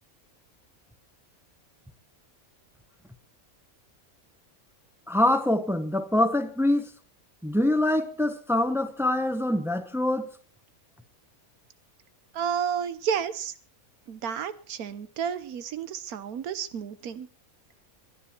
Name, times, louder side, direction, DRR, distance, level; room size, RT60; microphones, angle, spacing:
voice 1, 5.1-6.9 7.4-10.3, left 1 dB, ahead, 0.9 m, -24 dB
voice 2, 12.3-13.5 14.1-17.3, right 7 dB, 85° right, 1.4 m, -31 dB
21.5 x 10.5 x 4.4 m
omnidirectional pair, 1.5 m